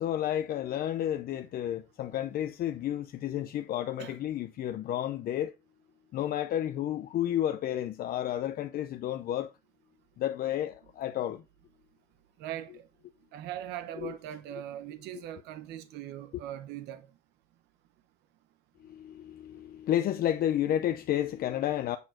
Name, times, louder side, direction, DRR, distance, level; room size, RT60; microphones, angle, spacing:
voice 1, 0.0-5.5 6.1-9.5 10.2-10.7 11.0-11.4 14.0-14.2 19.9-22.0, left 11 dB, 60° left, 0.7 m, -31 dB
voice 2, 12.4-12.8 13.3-17.1, right 11 dB, 90° right, 0.8 m, -40 dB
8.3 x 4.7 x 4.3 m
cardioid pair, 110°, 17 cm